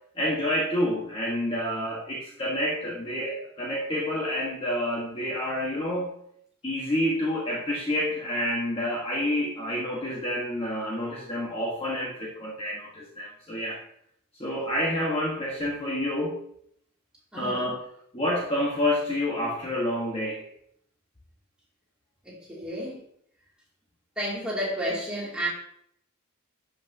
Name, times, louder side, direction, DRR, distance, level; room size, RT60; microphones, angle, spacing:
voice 1, 0.2-6.1 6.6-13.8 14.4-16.4 17.3-17.8 18.1-20.4, left 1 dB, 25° left, -4 dB, 1.2 m, -28 dB
voice 2, 17.3-17.8 22.3-23.0 24.2-25.5, equal, 5° right, -6 dB, 2.4 m, -31 dB
11.5 x 5.7 x 2.7 m, 0.70 s
head